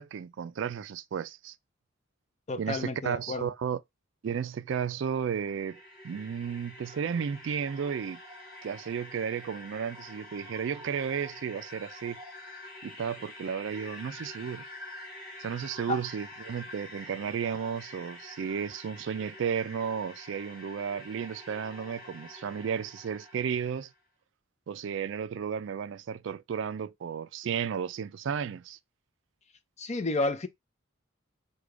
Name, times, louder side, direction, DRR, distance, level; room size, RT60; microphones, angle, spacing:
voice 1, 0.0-1.6 2.6-3.8 4.2-8.2 8.6-12.2 12.8-14.6 15.4-23.9 24.7-28.8, right 7 dB, 60° right, 0.3 m, -33 dB
voice 2, 2.5-3.5 15.9-16.0 29.8-30.5, left 2 dB, 35° left, 0.5 m, -31 dB
sound 1, 5.2-23.9, left 1 dB, ahead, 2.9 m, -47 dB
5.0 x 2.2 x 4.8 m
head